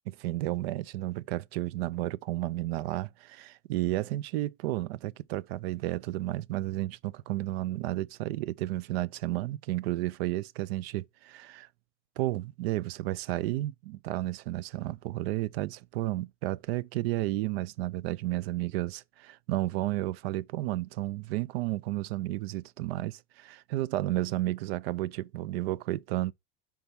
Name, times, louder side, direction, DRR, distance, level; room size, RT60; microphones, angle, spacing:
voice 1, 0.1-11.7 12.2-26.3, right 16 dB, 75° right, 0.5 m, -32 dB
5.6 x 3.6 x 5.6 m
supercardioid pair, 110°, 31 cm